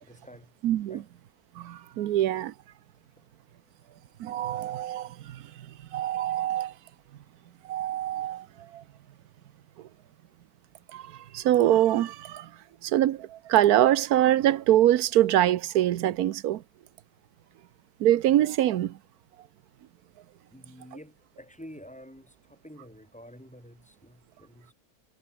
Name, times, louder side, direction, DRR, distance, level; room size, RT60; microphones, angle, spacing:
voice 1, 0.0-0.5 0.9-1.1 3.2-3.3 3.8-4.6 5.5-6.2 20.5-24.7, equal, 5° left, 4.0 m, -50 dB
voice 2, 0.6-1.0 1.6-2.5 4.2-5.4 5.9-6.7 7.7-8.5 8.7-8.8 10.9-11.0 11.3-12.5 12.8-16.6 18.0-18.9, right 12 dB, 90° right, 1.3 m, -24 dB
omnidirectional pair, 1.6 m